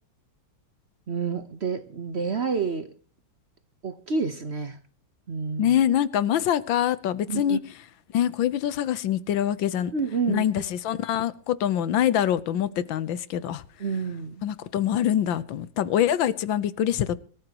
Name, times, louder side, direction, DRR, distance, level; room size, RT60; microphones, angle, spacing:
voice 1, 1.1-2.9 3.8-4.8 5.3-5.8 7.3-7.6 9.9-10.4 13.8-14.4, right 5 dB, 45° right, 1.0 m, -29 dB
voice 2, 5.6-7.6 8.1-9.9 10.3-13.6 14.4-17.2, left 10 dB, 80° left, 1.6 m, -24 dB
25.0 x 13.5 x 3.0 m
omnidirectional pair, 2.1 m